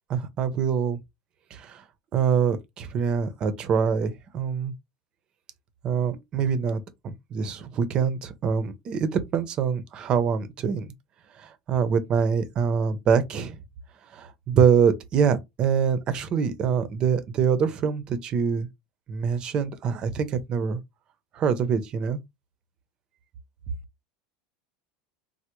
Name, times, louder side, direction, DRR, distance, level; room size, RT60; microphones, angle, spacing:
voice 1, 0.1-1.0 1.5-1.8 2.1-4.7 5.8-10.9 11.7-13.6 14.1-18.7 19.1-20.8 21.4-22.2, right 6 dB, 35° right, 0.6 m, -24 dB
3.3 x 2.1 x 3.0 m
supercardioid pair, 130°, 2 cm